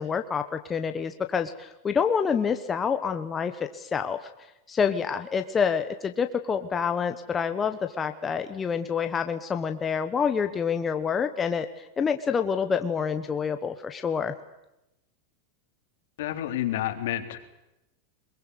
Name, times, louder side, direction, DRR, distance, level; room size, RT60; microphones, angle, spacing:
voice 1, 0.0-4.2 4.7-14.3, left 6 dB, 15° left, 7 dB, 1.1 m, -27 dB
voice 2, 16.2-17.4, left 12 dB, 70° left, 6 dB, 3.7 m, -29 dB
22.5 x 22.0 x 9.8 m, 0.90 s
supercardioid pair, 165°, 0 cm